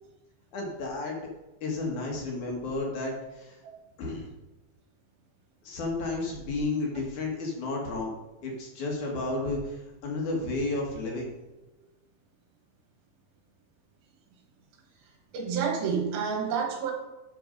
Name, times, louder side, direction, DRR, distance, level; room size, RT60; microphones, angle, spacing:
voice 1, 0.5-1.2 1.6-3.6 4.0-4.3 5.6-8.1 8.4-11.3, left 2 dB, 60° left, 0 dB, 2.7 m, -32 dB
voice 2, 15.3-16.9, right 6 dB, 80° right, 3 dB, 3.2 m, -28 dB
12.0 x 4.5 x 5.2 m, 1.0 s
omnidirectional pair, 4.2 m